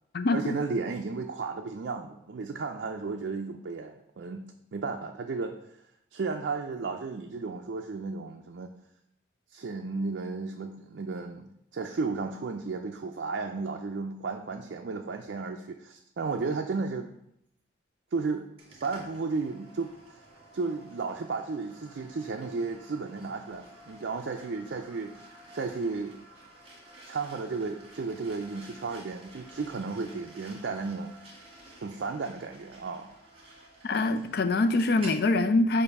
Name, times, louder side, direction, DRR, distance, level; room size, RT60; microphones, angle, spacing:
voice 1, 0.3-4.4 4.7-5.8 6.1-8.7 9.5-17.1 18.1-18.5 18.7-19.9 20.5-25.2 25.5-26.2 27.1-31.1 31.8-33.2, right 4 dB, 65° right, 3 dB, 0.4 m, -34 dB
sound 1, 18.6-35.2, right 1 dB, 30° right, 1.8 m, -51 dB
voice 2, 33.8-35.8, left 2 dB, 55° left, 11 dB, 0.4 m, -24 dB
6.8 x 2.6 x 5.3 m, 0.76 s
head